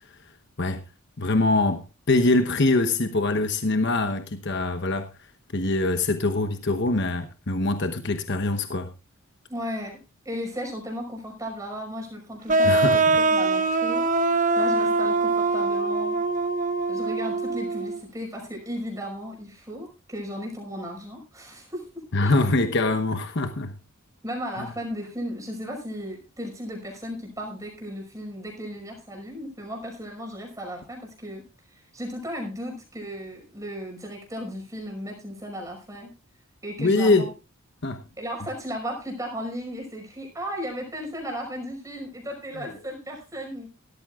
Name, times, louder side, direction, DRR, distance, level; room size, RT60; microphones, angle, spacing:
voice 1, 1.2-5.1 5.5-8.9 12.6-13.2 22.1-23.7 24.6-24.7 36.8-37.2 37.8-38.0 42.6-42.7, left 2 dB, 55° left, 1.0 m, -23 dB
voice 2, 9.5-10.0 10.2-14.0 14.5-16.2 16.9-22.4 24.2-31.4 31.7-36.1 36.6-37.3 38.2-43.7, equal, 15° right, 5.4 m, -35 dB
sound 1, 12.5-18.0, right 3 dB, 35° right, 0.9 m, -23 dB
17.0 x 13.5 x 2.5 m
head